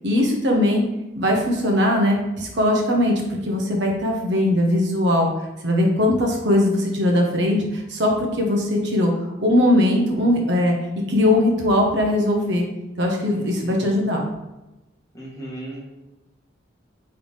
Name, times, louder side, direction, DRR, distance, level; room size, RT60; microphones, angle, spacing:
voice 1, 0.0-0.8 1.1-3.1 3.4-5.3 5.6-9.1 9.4-10.7 11.1-12.6 13.0-14.2, left 1 dB, 60° right, 1 dB, 0.8 m, -20 dB
voice 2, 13.3-13.9 15.1-15.8, right 1 dB, 15° left, -6 dB, 1.2 m, -37 dB
3.4 x 3.2 x 4.0 m, 0.99 s
head